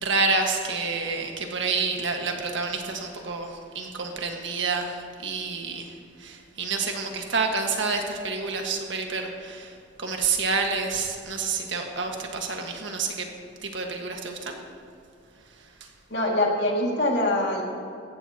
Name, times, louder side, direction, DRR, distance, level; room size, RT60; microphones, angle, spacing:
voice 1, 0.0-5.9 6.2-13.3 13.6-14.6, right 4 dB, 65° right, 2 dB, 1.6 m, -28 dB
voice 2, 16.1-17.6, left 1 dB, 55° left, -1 dB, 2.2 m, -24 dB
18.0 x 15.0 x 2.9 m, 2.6 s
head